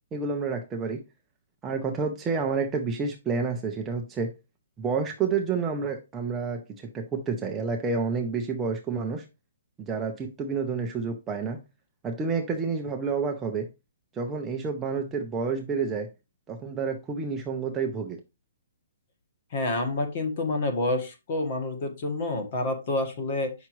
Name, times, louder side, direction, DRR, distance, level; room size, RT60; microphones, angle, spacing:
voice 1, 0.1-1.0 1.6-4.3 4.8-9.2 9.8-11.6 12.0-13.7 14.1-16.1 16.5-18.2, right 5 dB, 10° right, 0.6 m, -29 dB
voice 2, 19.5-23.5, left 2 dB, 30° left, 1.4 m, -28 dB
8.1 x 5.8 x 3.1 m
hypercardioid pair, 175°, 0 cm